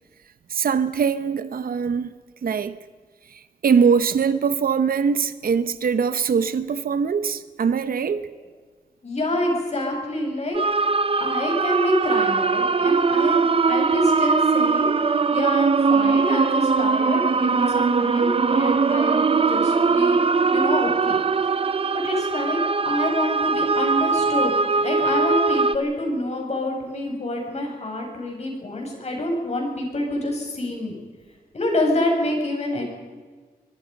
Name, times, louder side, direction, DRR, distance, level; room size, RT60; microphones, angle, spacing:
voice 1, 0.5-2.1 2.4-2.8 3.3-8.3, right 6 dB, 75° right, 0.9 m, -22 dB
voice 2, 9.0-10.6 11.2-14.9 15.3-20.2 20.5-21.2 21.9-31.0 31.5-32.8, left 1 dB, 45° left, 7.1 m, -27 dB
sound 1, 10.5-25.8, right 4 dB, 40° right, 0.7 m, -21 dB
23.5 x 23.0 x 5.4 m
wide cardioid pair, 150°, 15 cm